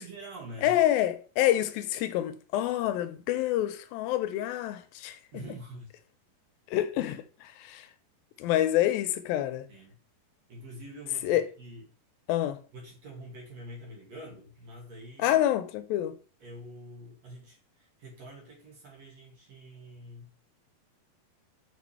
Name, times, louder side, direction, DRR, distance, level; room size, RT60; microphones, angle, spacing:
voice 1, 0.0-0.8 5.3-5.9 9.7-9.9 10.5-11.8 12.7-15.4 16.4-20.3, right 1 dB, 50° right, 2.8 m, -46 dB
voice 2, 0.6-5.2 6.7-7.9 8.4-9.7 11.2-11.5 12.3-12.6 15.2-16.2, left 13 dB, 85° left, 2.3 m, -27 dB
7.2 x 5.0 x 3.3 m
omnidirectional pair, 4.2 m